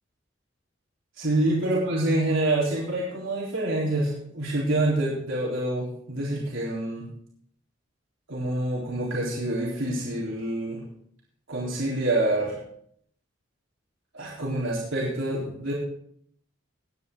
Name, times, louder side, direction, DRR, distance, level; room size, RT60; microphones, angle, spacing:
voice 1, 1.2-7.1 8.3-10.8 11.5-12.6 14.1-15.7, right 1 dB, 75° right, -5 dB, 3.8 m, -27 dB
19.0 x 9.7 x 3.8 m, 0.65 s
head